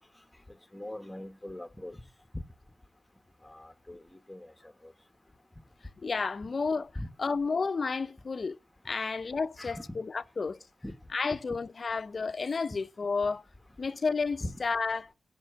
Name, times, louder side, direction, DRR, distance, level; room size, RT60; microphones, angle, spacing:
voice 1, 0.7-2.0 2.3-2.4 3.4-4.0 4.3-4.5 4.8-4.9 6.9-7.1 9.0-9.1 9.6-9.8 10.8-10.9 14.4-14.6, left 1 dB, 10° left, 1.3 m, -40 dB
voice 2, 6.0-6.9 7.2-8.6 8.8-10.6 11.1-13.4 13.8-15.1, left 4 dB, 50° left, 0.7 m, -31 dB
15.0 x 5.9 x 8.0 m
wide cardioid pair, 85°, 0 cm